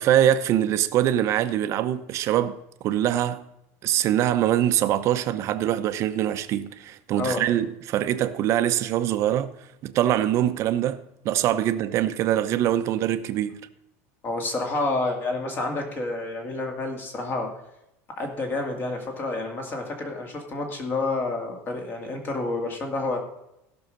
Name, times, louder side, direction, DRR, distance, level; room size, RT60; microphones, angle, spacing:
voice 1, 0.0-2.6 2.8-3.4 3.8-9.5 9.8-13.6, right 11 dB, 40° right, 0.8 m, -23 dB
voice 2, 14.2-17.5 18.2-23.2, left 2 dB, 25° left, 2.3 m, -29 dB
15.5 x 6.4 x 5.3 m
cardioid pair, 155°, 8 cm